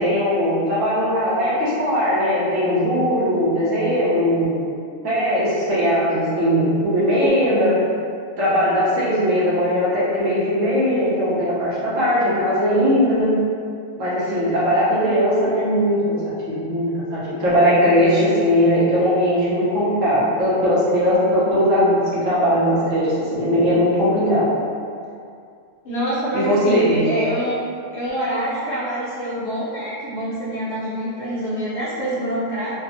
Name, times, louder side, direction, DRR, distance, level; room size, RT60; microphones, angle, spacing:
voice 1, 0.0-4.6 5.0-7.8 8.4-13.4 14.0-24.5 26.3-27.1, equal, 90° right, -9 dB, 1.2 m, -19 dB
voice 2, 25.8-27.6 27.9-32.7, equal, 60° left, -9 dB, 1.1 m, -25 dB
3.5 x 2.0 x 2.7 m, 2.4 s
omnidirectional pair, 1.3 m